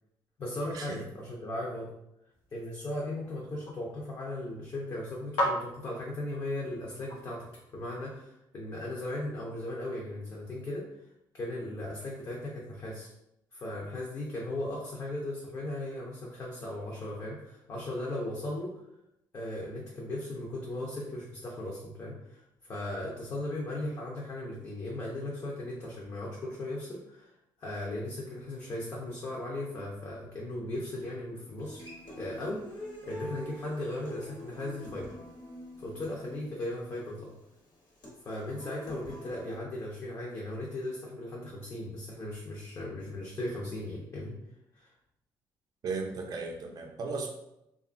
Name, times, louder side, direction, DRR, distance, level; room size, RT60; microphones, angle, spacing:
voice 1, 0.4-1.9 2.5-7.5 7.7-10.9 11.3-13.1 13.5-18.7 19.3-27.3 27.6-31.8 32.2-35.1 35.8-37.3 38.2-44.4 44.7-44.9, left 1 dB, 40° left, -4 dB, 0.6 m, -37 dB
sound 1, 2.3-8.2, equal, 90° left, 0.7 m, -39 dB
Human voice / Acoustic guitar, 31.6-39.6, equal, 60° left, 1.0 m, -45 dB
voice 2, 45.8-47.3, right 4 dB, 50° right, 2 dB, 0.4 m, -35 dB
2.8 x 2.3 x 2.5 m, 0.84 s
cardioid pair, 105°, 9 cm